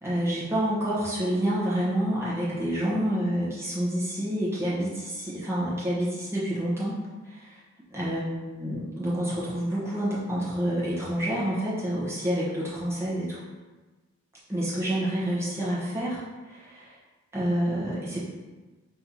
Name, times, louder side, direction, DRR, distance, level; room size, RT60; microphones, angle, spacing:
voice 1, 0.0-7.6 7.9-13.4 14.5-17.0 17.3-18.2, right 1 dB, 10° right, -8 dB, 1.1 m, -28 dB
4.3 x 2.9 x 4.1 m, 1.2 s
head